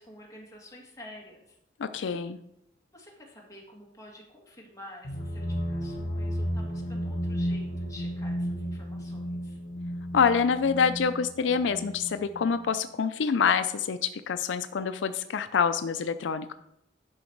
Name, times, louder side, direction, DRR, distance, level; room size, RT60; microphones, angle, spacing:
voice 1, 0.0-1.6 2.9-9.6, left 1 dB, 20° left, -2 dB, 1.9 m, -49 dB
voice 2, 1.8-2.4 10.1-16.5, left 6 dB, 80° left, 11 dB, 0.4 m, -26 dB
sound 1, 5.0-12.7, equal, 65° left, 1.4 m, -33 dB
11.0 x 5.2 x 4.6 m, 0.79 s
head